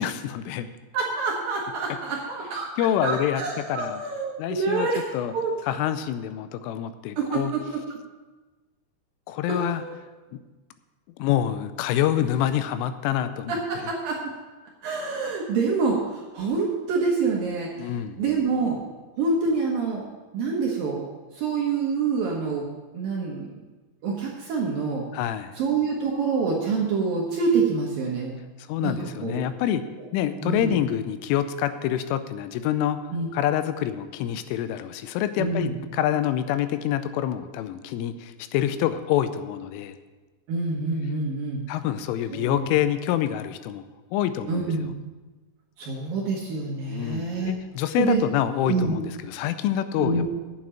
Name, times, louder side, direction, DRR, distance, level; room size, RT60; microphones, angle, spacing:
voice 1, 0.0-0.8 2.8-4.0 4.4-4.9 5.1-5.3 5.6-7.5 9.3-9.8 10.3-10.4 11.2-13.5 17.8-18.2 25.1-25.5 28.7-29.9 30.1-33.0 33.3-40.0 41.7-43.8 44.1-44.7 46.9-50.2, left 11 dB, 85° left, 11 dB, 3.1 m, -26 dB
voice 2, 0.9-2.7 3.0-5.1 5.3-5.5 7.2-7.6 9.5-10.0 13.5-14.2 14.8-17.7 18.2-18.8 19.2-20.1 20.3-21.1 21.3-22.6 22.9-23.5 24.0-25.0 25.6-28.4 28.8-29.4 30.4-30.8 33.1-33.3 35.4-35.8 40.5-41.6 42.3-42.7 44.5-44.9 45.8-47.5 48.0-48.2 48.6-48.9 50.0-50.2, right 4 dB, 70° right, -2 dB, 2.2 m, -26 dB
8.6 x 7.5 x 8.8 m, 1.2 s
omnidirectional pair, 5.8 m